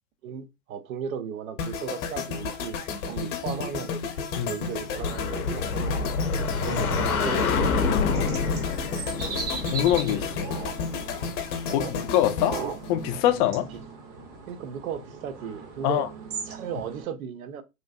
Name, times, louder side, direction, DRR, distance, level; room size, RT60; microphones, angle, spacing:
voice 1, 0.2-2.8 3.0-3.9 4.5-6.1 6.6-7.7 9.2-9.5 11.7-11.9 13.7-13.8 14.5-16.1 16.5-17.6, right 7 dB, 70° right, 0.7 m, -36 dB
sound 1, 1.6-13.8 14.0-14.3, left 5 dB, 55° left, 0.8 m, -33 dB
sound 2, 4.8-11.4, left 4 dB, 90° left, 0.6 m, -28 dB
sound 3, 7.5-17.0, right 4 dB, 35° right, 0.8 m, -39 dB
voice 2, 9.7-10.5 11.7-12.6 12.9-13.7 15.8-16.1, left 12 dB, 35° left, 0.4 m, -24 dB
3.0 x 2.5 x 2.3 m
hypercardioid pair, 105°, 43 cm